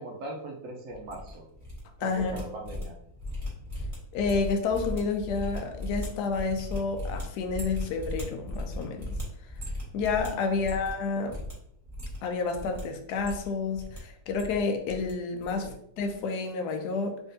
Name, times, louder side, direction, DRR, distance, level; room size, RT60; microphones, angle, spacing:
voice 1, 0.0-1.5 2.0-2.9 10.5-10.8 15.6-15.7, right 2 dB, 85° right, -1 dB, 0.7 m, -40 dB
sound 1, 0.9-1.8 2.1-11.0 11.3-11.5 11.8-12.8 13.1-14.0 14.2-15.1 15.4-15.7 16.0-16.2, left 1 dB, 20° right, 1.4 m, -37 dB
voice 2, 2.0-2.4 4.1-9.1 9.9-11.4 12.2-15.7 16.0-17.2, left 4 dB, 70° left, 4 dB, 1.0 m, -30 dB
3.6 x 3.4 x 2.6 m, 0.71 s
omnidirectional pair, 2.1 m